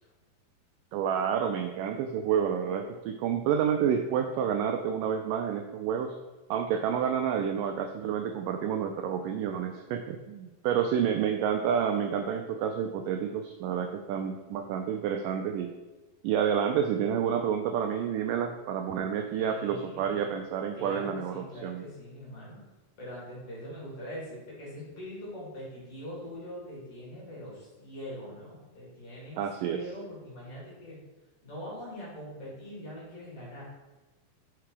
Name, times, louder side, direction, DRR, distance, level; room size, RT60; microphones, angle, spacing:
voice 1, 0.9-6.1 6.5-15.7 16.2-21.8 29.4-29.8, right 8 dB, 85° right, 5 dB, 1.9 m, -29 dB
voice 2, 19.4-20.3 20.8-22.6 23.0-31.0 31.4-33.6, equal, 40° left, -7 dB, 3.5 m, -42 dB
5.8 x 5.8 x 4.8 m, 1.2 s
omnidirectional pair, 4.3 m